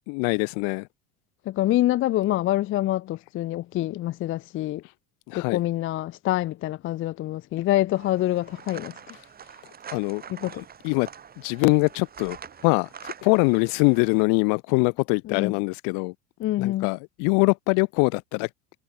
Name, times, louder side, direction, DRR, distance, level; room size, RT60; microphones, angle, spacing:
voice 1, 0.1-0.9 5.3-5.6 9.9-10.2 10.8-11.1 11.4-12.4 12.6-16.1 16.6-18.5, left 37 dB, 70° left, 1.7 m, -23 dB
voice 2, 1.5-4.8 5.3-9.1 10.3-10.6 15.3-15.5 16.4-16.9, left 15 dB, 40° left, 0.6 m, -26 dB
sound 1, 7.9-14.2, right 7 dB, 25° right, 2.4 m, -44 dB
supercardioid pair, 115°, 33 cm